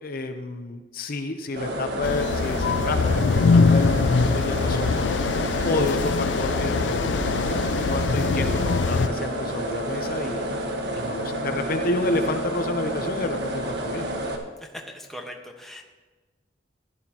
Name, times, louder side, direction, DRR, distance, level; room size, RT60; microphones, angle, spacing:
voice 1, 0.0-4.9 5.6-8.6 8.9-10.4 10.9-14.1, left 2 dB, 55° left, 6 dB, 0.7 m, -30 dB
sound 1, 1.6-14.4, right 1 dB, 65° right, 1.4 m, -30 dB
sound 2, 2.0-9.1, left 4 dB, 80° left, 0.4 m, -23 dB
Bowed string instrument, 5.4-11.0, equal, 20° left, 4.1 m, -48 dB
voice 2, 14.6-15.8, equal, ahead, 0 dB, 1.3 m, -40 dB
15.5 x 11.5 x 3.0 m, 1.3 s
head